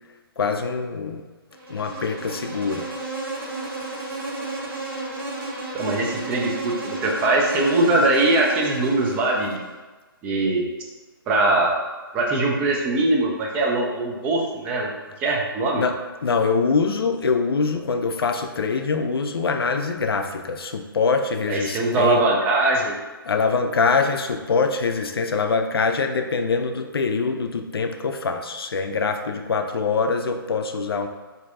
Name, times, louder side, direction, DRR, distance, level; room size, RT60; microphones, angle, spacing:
voice 1, 0.4-1.2 1.7-2.8 15.7-16.0 16.2-22.2 23.2-31.1, left 4 dB, 80° left, 6 dB, 0.5 m, -24 dB
Insect, 1.5-9.7, right 2 dB, 80° right, 1.4 m, -33 dB
voice 2, 5.7-9.6 10.2-10.6 11.3-11.7 12.1-14.9 15.2-15.8 21.5-23.0, right 2 dB, 10° right, -1 dB, 0.4 m, -21 dB
4.4 x 2.6 x 2.6 m, 1.3 s
hypercardioid pair, 150°, 12 cm